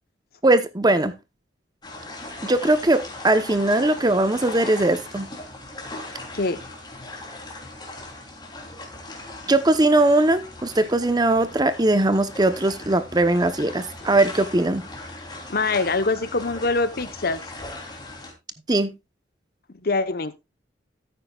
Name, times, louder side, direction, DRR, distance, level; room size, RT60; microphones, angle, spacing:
voice 1, 0.4-1.1 2.4-5.3 9.5-14.8 18.7-18.9, right 2 dB, 20° right, 0.8 m, -20 dB
sound 1, 1.8-18.3, left 2 dB, 25° left, 3.2 m, -39 dB
voice 2, 15.5-17.4 19.8-20.4, left 3 dB, 55° left, 1.0 m, -24 dB
14.0 x 9.1 x 2.4 m
head